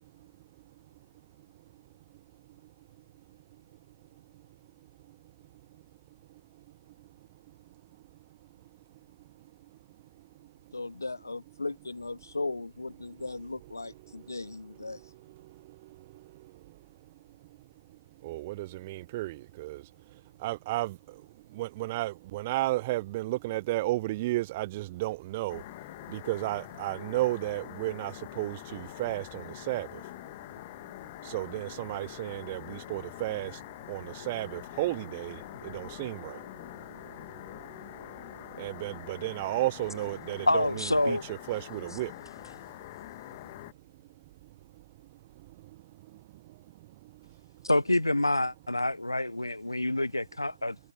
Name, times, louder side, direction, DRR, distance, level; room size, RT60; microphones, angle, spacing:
voice 1, 10.7-15.0, left 3 dB, 50° left, 1.9 m, -37 dB
voice 2, 18.2-19.8 20.4-21.0 21.6-25.6 26.1-29.9 31.3-33.5 33.9-36.4 38.6-42.1, right 18 dB, 10° right, 0.3 m, -33 dB
sound 1, 25.5-43.7, left 18 dB, 10° left, 1.2 m, -45 dB
voice 3, 40.5-41.2 47.6-50.8, left 1 dB, 75° left, 0.5 m, -27 dB
figure-of-eight pair, 165°, 2 cm